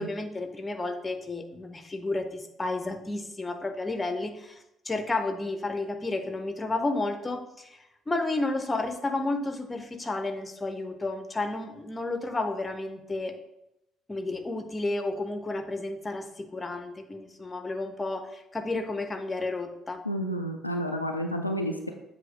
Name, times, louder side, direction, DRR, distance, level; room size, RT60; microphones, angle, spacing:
voice 1, 0.0-13.3 14.1-20.0, left 2 dB, 20° left, 7 dB, 0.8 m, -32 dB
voice 2, 20.0-21.9, equal, 90° left, 3 dB, 0.4 m, -30 dB
7.5 x 2.8 x 5.2 m, 0.86 s
figure-of-eight pair, 50°, 0 cm